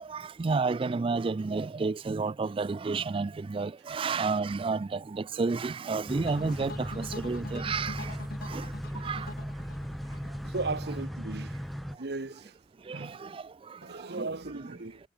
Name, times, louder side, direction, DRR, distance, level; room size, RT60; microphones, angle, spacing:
voice 1, 0.1-8.1 8.4-8.6 9.0-9.3 12.9-13.4 14.2-14.3, right 4 dB, 30° right, 0.4 m, -31 dB
sound 1, 6.1-12.0, equal, ahead, 1.0 m, -37 dB
sound 2, 6.3-11.4, left 2 dB, 60° left, 1.6 m, -45 dB
voice 2, 10.5-11.5 12.0-12.5 12.9-13.2 13.8-15.0, right 3 dB, 65° right, 1.1 m, -36 dB
head